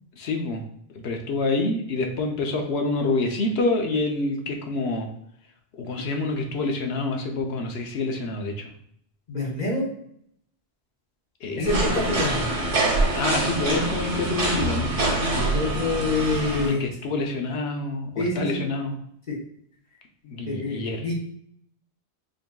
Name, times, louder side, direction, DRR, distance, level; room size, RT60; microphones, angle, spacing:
voice 1, 0.2-0.6 0.9-5.1 5.8-8.7 11.4-11.8 13.2-14.9 16.6-18.9 20.2-21.0, left 2 dB, 70° left, 3 dB, 0.9 m, -27 dB
voice 2, 9.3-9.9 11.5-12.5 15.0-16.8 18.2-18.6 19.3-19.4 20.5-21.1, left 2 dB, 40° left, -4 dB, 1.1 m, -27 dB
sound 1, 11.6-16.7, right 2 dB, 90° right, 1.2 m, -25 dB
5.1 x 2.7 x 2.2 m, 0.68 s
omnidirectional pair, 1.1 m